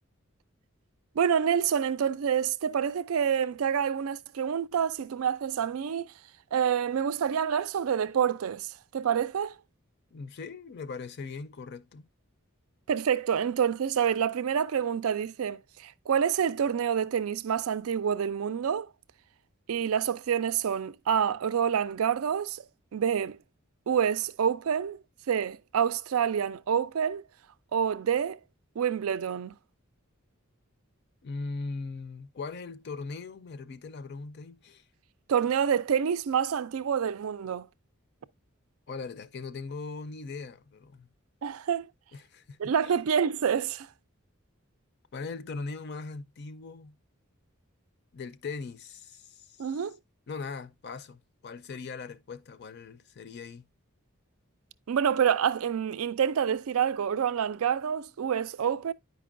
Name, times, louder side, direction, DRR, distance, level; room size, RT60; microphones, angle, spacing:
voice 1, 1.2-6.1 6.5-9.5 12.9-18.9 19.7-22.6 22.9-23.4 23.9-25.0 25.3-27.2 27.7-28.4 28.8-29.5 35.3-37.7 41.4-41.8 42.6-43.9 49.6-50.0 54.9-58.9, right 8 dB, 85° right, 0.4 m, -27 dB
voice 2, 10.1-12.0 31.2-34.8 38.9-41.1 42.1-43.0 45.1-47.0 48.1-49.7 50.3-53.7, left 4 dB, 50° left, 0.4 m, -40 dB
9.3 x 5.2 x 2.5 m
head